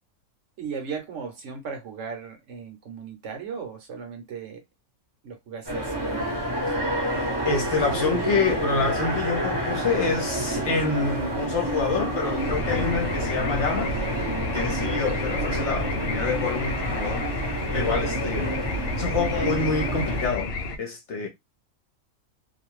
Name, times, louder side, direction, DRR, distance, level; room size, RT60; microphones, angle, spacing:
voice 1, 0.6-4.6 5.2-6.9 14.4-14.8, right 6 dB, 60° right, 1.0 m, -37 dB
sound 1, 5.7-20.3, right 1 dB, 25° right, 0.6 m, -29 dB
voice 2, 7.4-13.9 14.5-17.3 17.7-18.6 19.0-20.5 20.8-21.3, left 4 dB, 60° left, 0.9 m, -27 dB
sound 2, 12.4-20.8, left 2 dB, 85° left, 0.5 m, -31 dB
2.5 x 2.2 x 3.0 m
omnidirectional pair, 1.5 m